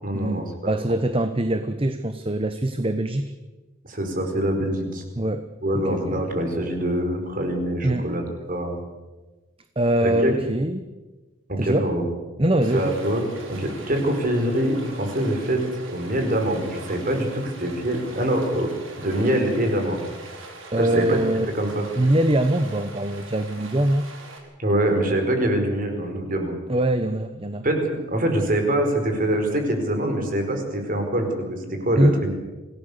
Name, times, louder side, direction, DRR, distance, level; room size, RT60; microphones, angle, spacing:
voice 1, 0.0-0.7 3.9-5.0 5.6-8.8 10.0-10.3 11.5-12.1 12.7-13.2 13.5-15.6 15.9-18.7 19.0-20.0 20.8-21.2 21.5-21.9 24.6-26.5 27.6-27.8 28.1-32.3, right 1 dB, 45° right, 4 dB, 4.7 m, -24 dB
voice 2, 0.6-3.3 5.2-5.5 5.9-6.2 7.8-8.0 9.8-10.9 11.6-11.9 12.4-12.9 20.7-21.5 22.0-24.0 26.7-27.7 32.0-32.2, right 1 dB, 25° right, 9 dB, 0.9 m, -23 dB
Stream, 12.6-24.4, right 3 dB, 80° right, 4.7 m, -42 dB
26.5 x 17.5 x 6.8 m, 1.2 s
head